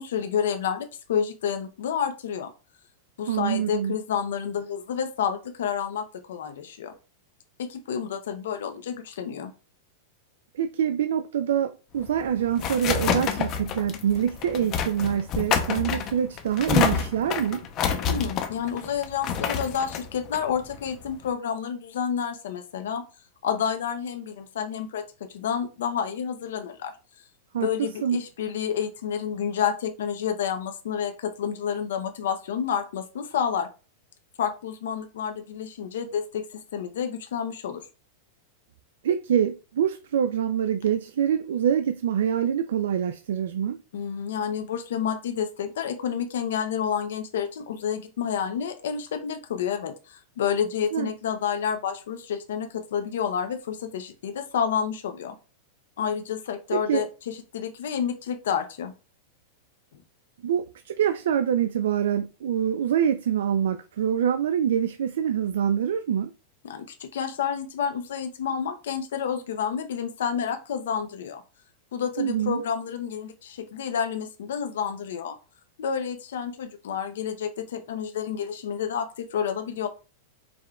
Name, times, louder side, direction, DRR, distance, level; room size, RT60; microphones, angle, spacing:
voice 1, 0.0-2.5 3.2-6.9 7.6-9.5 18.1-23.0 23.4-26.9 27.6-33.7 34.4-37.8 43.9-55.3 56.0-58.9 66.6-71.4 71.9-75.4 75.8-79.9, left 8 dB, 80° left, 0.6 m, -29 dB
voice 2, 3.3-4.0 10.5-17.6 27.5-27.7 28.0-28.2 39.0-43.8 50.9-51.1 56.7-57.0 60.4-66.3 72.2-72.6, right 9 dB, 85° right, 0.3 m, -25 dB
sound 1, 12.0-21.3, left 7 dB, 25° left, 0.5 m, -28 dB
4.8 x 2.2 x 3.6 m
supercardioid pair, 170°, 0 cm